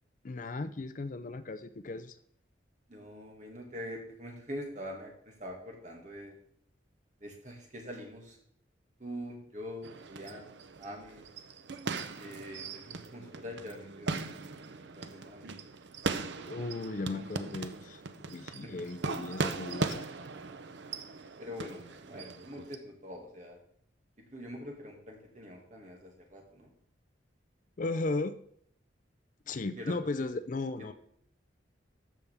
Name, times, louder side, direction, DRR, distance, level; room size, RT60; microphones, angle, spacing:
voice 1, 0.2-2.2 16.5-18.0 18.3-20.1 27.8-28.4 29.5-30.9, left 3 dB, 45° left, 11 dB, 0.4 m, -36 dB
voice 2, 2.9-6.4 7.2-8.4 9.0-11.3 12.2-15.7 18.6-19.3 21.4-23.6 24.3-26.7 29.8-30.0, equal, 40° right, 1 dB, 2.2 m, -44 dB
sound 1, 9.8-22.8, right 4 dB, 70° right, 0.6 m, -39 dB
14.0 x 5.6 x 3.5 m, 0.66 s
head